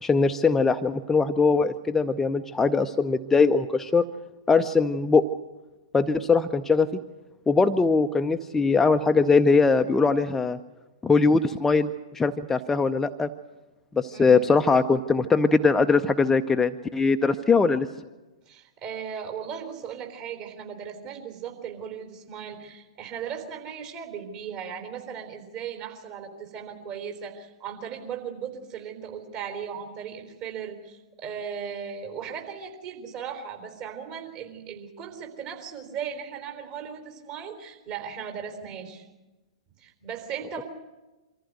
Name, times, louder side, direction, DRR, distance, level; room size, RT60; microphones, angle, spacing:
voice 1, 0.0-4.1 4.5-5.2 5.9-6.9 7.5-10.6 11.0-13.3 13.9-17.9, left 4 dB, 10° left, 7 dB, 0.6 m, -21 dB
voice 2, 14.1-14.4 18.5-39.0 39.8-40.6, right 7 dB, 40° right, 4 dB, 4.0 m, -37 dB
24.5 x 14.5 x 8.0 m, 1.1 s
figure-of-eight pair, 110°, 3 cm